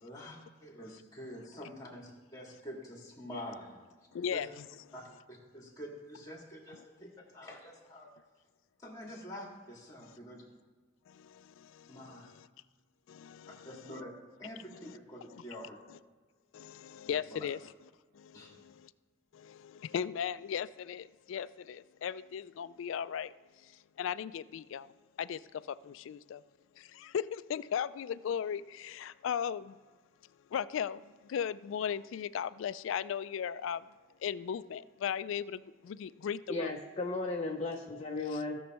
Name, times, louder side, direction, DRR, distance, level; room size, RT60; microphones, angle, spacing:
voice 1, 0.0-3.8 4.3-4.4 4.9-5.0 5.3-8.1 8.8-10.4 11.9-12.3 13.7-15.8 17.1-17.5 18.3-18.6, equal, 15° left, 2.0 m, -47 dB
voice 2, 4.1-4.7 10.0-10.1 11.1-12.5 13.1-13.7 14.8-15.0 15.3-15.4 16.5-17.6 18.1-18.9 19.3-23.3 23.6-23.7 24.0-24.9 25.2-26.4 26.8-29.8 30.5-33.9 34.2-36.7 38.3-38.4, left 8 dB, 70° left, 0.3 m, -37 dB
voice 3, 36.5-38.6, left 2 dB, 30° left, 0.7 m, -35 dB
17.0 x 6.3 x 3.0 m
head